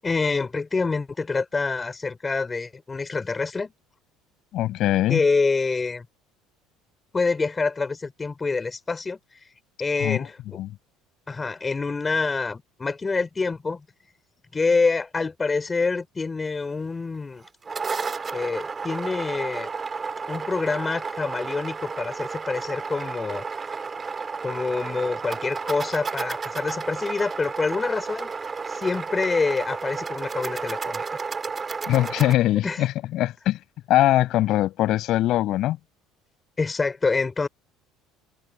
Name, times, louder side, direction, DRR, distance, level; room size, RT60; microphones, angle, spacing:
voice 1, 0.0-3.7 5.1-6.1 7.1-9.2 9.8-10.6 11.3-13.8 14.5-17.4 18.3-19.7 20.3-23.4 24.4-31.0 32.6-32.9 36.6-37.5, left 4 dB, 20° left, 3.6 m, -26 dB
voice 2, 4.5-5.2 10.0-10.3 10.5-10.7 31.9-33.6 33.9-35.8, left 14 dB, 60° left, 6.2 m, -22 dB
sound 1, 17.4-32.3, right 5 dB, 25° right, 2.2 m, -32 dB
cardioid pair, 115°, 0 cm